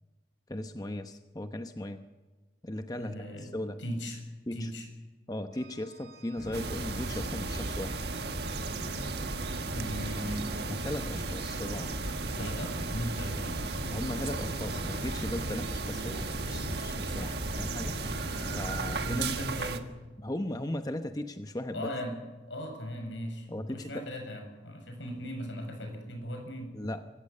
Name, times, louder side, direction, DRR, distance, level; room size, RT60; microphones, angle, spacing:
voice 1, 0.5-2.0 2.6-3.8 4.5-4.7 5.3-8.0 10.5-11.9 12.4-12.5 13.9-19.3 20.2-21.9 23.5-23.9 26.7-27.0, left 1 dB, 20° left, 7 dB, 0.8 m, -37 dB
voice 2, 3.0-3.5 3.8-4.2 4.5-4.9 9.7-10.5 12.4-13.6 19.1-19.9 21.7-22.2 22.5-26.8, equal, 80° left, 4 dB, 7.2 m, -37 dB
Organ, 5.5-16.4, right 5 dB, 80° right, 4.0 m, -54 dB
sound 1, 6.4-19.2, equal, 55° left, 5.2 m, -40 dB
sound 2, 6.5-19.8, right 3 dB, 60° right, 1.4 m, -35 dB
25.5 x 15.5 x 8.6 m, 1.2 s
head